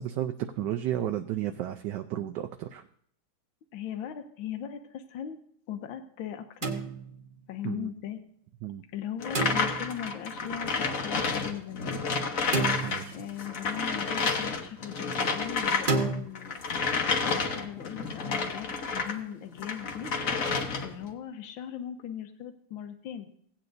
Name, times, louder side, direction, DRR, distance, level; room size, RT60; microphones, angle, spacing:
voice 1, 0.0-2.8 7.6-7.9 8.6-8.8 12.8-13.2, right 11 dB, 75° right, 6 dB, 1.1 m, -33 dB
voice 2, 3.7-5.4 5.7-6.7 7.5-8.2 8.9-12.0 13.1-16.6 16.9-20.1 20.8-23.3, left 9 dB, 85° left, 8 dB, 1.6 m, -39 dB
sound 1, 6.6-7.4 9.3-10.1 12.5-13.4 15.9-16.2, right 3 dB, 30° right, 1.1 m, -30 dB
sound 2, 9.2-13.0 13.3-19.2 19.6-21.0, left 4 dB, 50° left, 1.3 m, -30 dB
17.0 x 8.8 x 2.6 m, 0.66 s
omnidirectional pair, 2.1 m